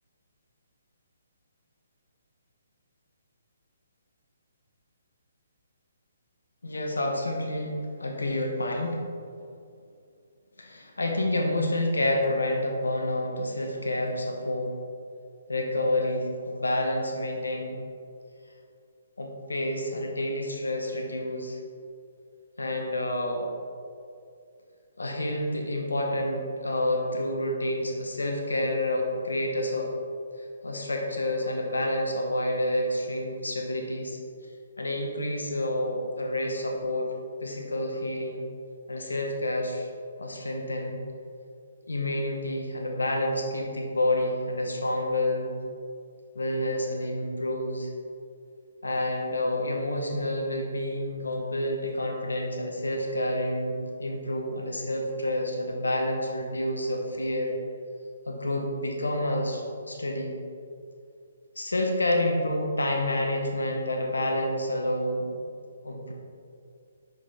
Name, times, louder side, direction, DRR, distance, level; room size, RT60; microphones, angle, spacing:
voice 1, 6.6-9.0 10.6-14.7 15.5-17.8 19.2-21.6 22.6-23.5 25.0-29.9 30.6-34.2 34.8-37.1 37.4-38.4 38.9-39.9 40.2-41.0 41.9-45.6 46.3-47.9 48.8-57.5 58.3-60.4 61.6-65.3 65.8-66.1, left 1 dB, 90° left, 1 dB, 1.0 m, -29 dB
5.3 x 5.0 x 4.1 m, 2.4 s
hypercardioid pair, 140°, 0 cm